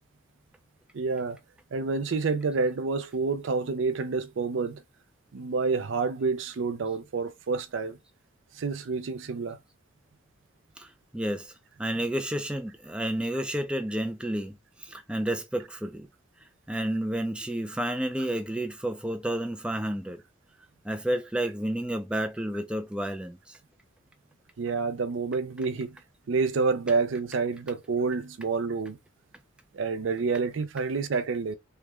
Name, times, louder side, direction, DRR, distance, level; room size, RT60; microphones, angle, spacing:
voice 1, 0.9-1.4 1.7-4.8 5.3-8.0 8.6-9.6 24.6-26.0 26.3-29.0 29.7-31.6, right 4 dB, 70° right, 0.5 m, -28 dB
voice 2, 11.1-11.5 11.8-16.1 16.7-20.2 20.8-23.6, right 1 dB, 5° right, 0.5 m, -31 dB
3.4 x 2.3 x 3.0 m
head